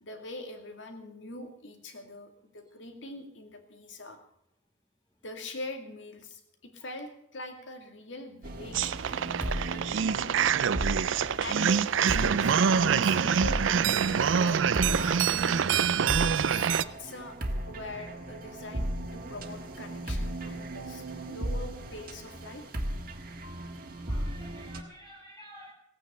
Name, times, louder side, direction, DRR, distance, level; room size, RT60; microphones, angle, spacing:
voice 1, 0.0-4.2 5.2-10.7 11.4-14.0 14.3-15.7 16.5-17.4 17.7-22.6, left 2 dB, 75° left, 5 dB, 2.2 m, -43 dB
sound 1, 8.4-24.8, right 1 dB, 50° right, 1.6 m, -36 dB
sound 2, 8.7-16.8, right 7 dB, 85° right, 0.5 m, -25 dB
voice 2, 10.1-10.4 24.0-25.7, equal, 20° left, -3 dB, 1.8 m, -52 dB
17.0 x 9.3 x 6.7 m, 0.74 s
head